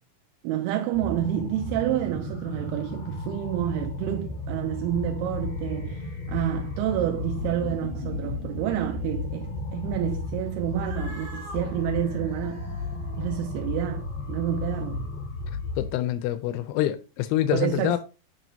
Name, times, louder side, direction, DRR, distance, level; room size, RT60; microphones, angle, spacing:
voice 1, 0.4-12.7 13.2-15.1 17.5-18.0, right 11 dB, 85° right, 2.5 m, -29 dB
sound 1, 0.9-15.9, left 3 dB, 45° left, 1.8 m, -34 dB
Cat, 10.6-15.3, right 1 dB, 40° right, 1.8 m, -47 dB
voice 2, 15.8-18.0, left 13 dB, 90° left, 2.6 m, -26 dB
7.5 x 5.6 x 2.7 m
omnidirectional pair, 4.5 m